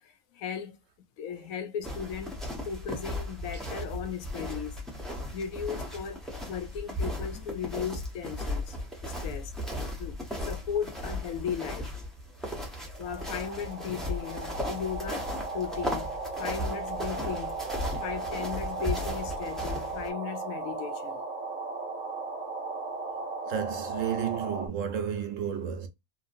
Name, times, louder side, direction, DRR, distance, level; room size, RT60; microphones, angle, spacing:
voice 1, 0.0-2.4 2.6-4.8 5.3-8.8 9.0-9.5 10.0-11.9 13.0-17.6 18.0-21.2, left 8 dB, 80° left, 1.0 m, -36 dB
sound 1, 1.8-20.1, left 1 dB, ahead, 0.6 m, -36 dB
sound 2, 12.8-24.7, right 3 dB, 35° right, 0.9 m, -36 dB
voice 2, 23.5-25.9, right 8 dB, 70° right, 1.0 m, -32 dB
2.9 x 2.5 x 2.5 m
omnidirectional pair, 1.4 m